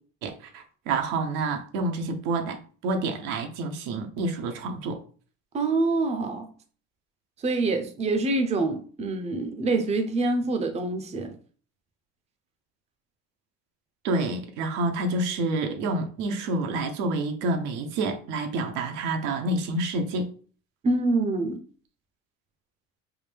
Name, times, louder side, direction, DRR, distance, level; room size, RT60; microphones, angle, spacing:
voice 1, 0.2-5.0 14.0-20.3, right 2 dB, 80° right, 0.7 m, -28 dB
voice 2, 5.5-6.5 7.4-11.4 20.8-21.6, right 3 dB, 20° right, 0.5 m, -26 dB
3.5 x 2.1 x 3.2 m
supercardioid pair, 95°, 32 cm